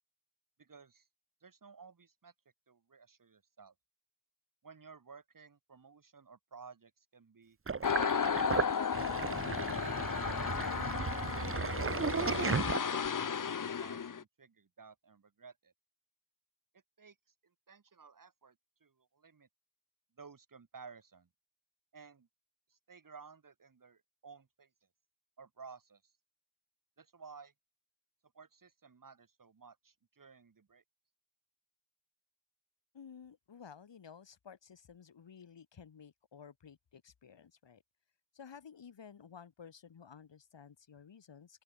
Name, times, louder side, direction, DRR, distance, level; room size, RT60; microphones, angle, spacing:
voice 1, 0.6-1.1 1.4-2.3 2.7-3.7 4.6-7.6 8.4-11.1 12.8-15.7 17.0-17.2 17.4-18.6 18.8-19.5 20.2-21.3 21.9-22.3 22.7-24.7 25.4-26.1 27.0-27.5 28.3-30.8, right 5 dB, 45° right, 3.6 m, -55 dB
Sink (filling or washing), 7.7-13.2, right 5 dB, 30° right, 0.9 m, -35 dB
sound 1, 7.8-14.2, left 7 dB, 45° left, 1.1 m, -34 dB
voice 2, 32.9-37.8 38.3-41.6, left 7 dB, 75° left, 5.0 m, -54 dB
open air
wide cardioid pair, 140°, 43 cm